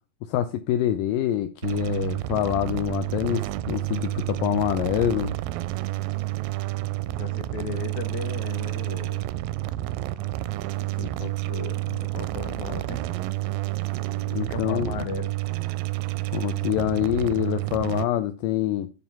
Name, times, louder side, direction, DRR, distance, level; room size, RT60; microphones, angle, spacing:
voice 1, 0.2-5.3 11.0-11.1 11.9-12.0 14.3-14.9 16.3-18.9, left 12 dB, 80° left, 2.0 m, -26 dB
sound 1, 1.6-18.1, right 17 dB, 80° right, 2.0 m, -30 dB
voice 2, 7.1-9.3 10.8-13.0 14.5-15.3, left 7 dB, 60° left, 2.2 m, -37 dB
9.4 x 3.6 x 5.7 m
omnidirectional pair, 4.3 m